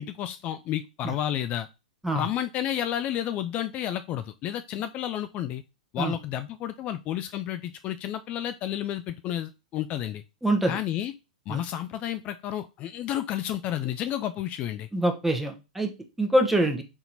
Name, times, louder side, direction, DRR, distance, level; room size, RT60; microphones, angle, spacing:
voice 1, 0.0-1.7 2.1-5.6 5.9-10.2 10.7-11.1 11.5-14.9, left 11 dB, 35° left, 10 dB, 0.3 m, -31 dB
voice 2, 10.4-10.8 11.5-11.6 14.9-15.9 16.2-16.8, right 1 dB, 5° right, 4 dB, 0.9 m, -24 dB
4.1 x 2.9 x 3.9 m, 0.27 s
hypercardioid pair, 105°, 4 cm